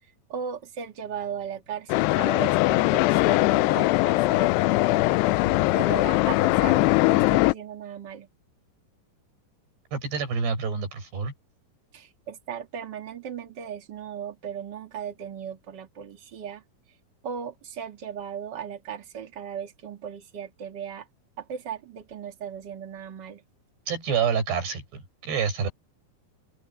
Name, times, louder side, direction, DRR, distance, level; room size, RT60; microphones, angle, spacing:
voice 1, 0.3-4.5 5.4-8.3 11.9-16.6 17.2-21.1 21.4-23.4, right 8 dB, 45° right, 1.5 m, -37 dB
sound 1, 1.9-7.5, left 20 dB, 85° left, 2.7 m, -21 dB
voice 2, 9.9-11.3 23.9-25.7, right 6 dB, 80° right, 8.7 m, -27 dB
open air
omnidirectional pair, 4.7 m